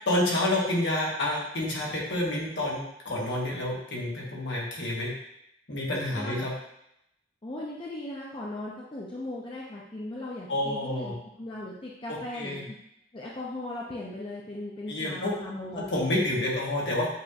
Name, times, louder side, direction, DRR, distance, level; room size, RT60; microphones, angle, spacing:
voice 1, 0.0-5.1 5.7-6.5 10.5-11.1 12.1-12.6 14.9-15.3 15.7-17.1, left 1 dB, 65° left, -4 dB, 1.3 m, -29 dB
voice 2, 6.1-6.5 7.4-12.8 13.1-15.9, left 1 dB, 25° left, -4 dB, 0.5 m, -38 dB
7.2 x 3.0 x 2.4 m, 0.79 s
head